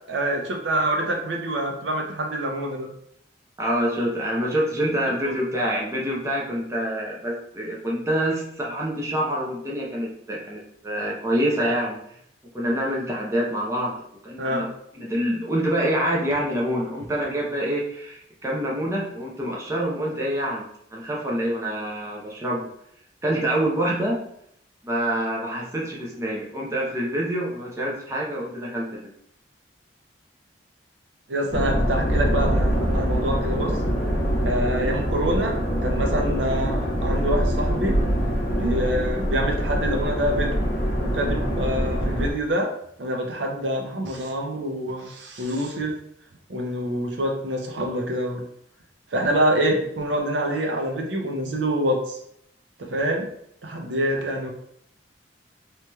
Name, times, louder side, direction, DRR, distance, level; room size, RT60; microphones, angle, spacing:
voice 1, 0.1-2.9 5.3-5.4 14.4-14.7 31.3-33.7 34.4-38.0 38.5-40.7 41.0-42.7 43.0-45.9 46.5-48.4 49.1-52.2 52.8-53.3 53.6-54.5, right 1 dB, 75° right, 1 dB, 0.6 m, -26 dB
voice 2, 3.6-12.0 12.5-14.7 15.0-22.7 23.2-24.2 24.8-29.1, right 1 dB, 15° right, -4 dB, 0.6 m, -26 dB
sound 1, 31.5-42.3, equal, 50° left, 0.8 m, -24 dB
3.0 x 2.8 x 2.3 m, 0.71 s
head